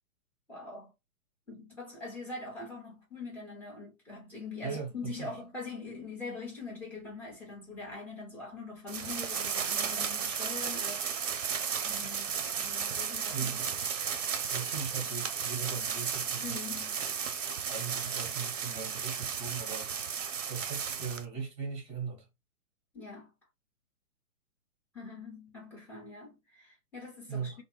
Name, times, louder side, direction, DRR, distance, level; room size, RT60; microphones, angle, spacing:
voice 1, 0.5-0.9 1.5-11.0 11.8-13.6 16.4-17.0 22.9-23.3 24.9-27.6, left 3 dB, 5° left, 1.1 m, -43 dB
voice 2, 4.6-5.3 13.3-13.7 14.5-16.7 17.7-19.9 20.5-22.3 27.3-27.6, right 6 dB, 15° right, 1.4 m, -39 dB
sound 1, 8.9-21.2, right 7 dB, 60° right, 0.6 m, -34 dB
3.0 x 2.2 x 3.2 m
figure-of-eight pair, 125°, 43 cm